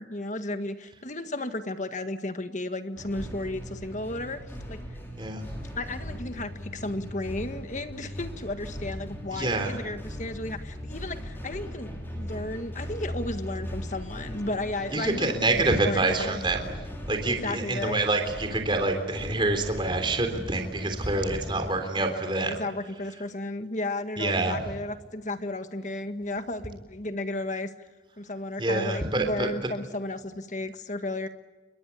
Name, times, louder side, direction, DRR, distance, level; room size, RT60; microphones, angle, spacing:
voice 1, 0.0-5.0 5.8-16.4 17.3-18.1 22.0-27.9 28.2-31.3, left 2 dB, 40° left, 9 dB, 1.7 m, -34 dB
sound 1, 3.0-21.7, equal, 10° left, 5.9 m, -39 dB
voice 2, 5.2-5.5 9.3-9.7 14.9-16.7 17.1-22.6 24.2-24.6 28.6-29.5, right 2 dB, 25° right, 5 dB, 3.5 m, -26 dB
28.0 x 23.5 x 8.5 m, 1.2 s
head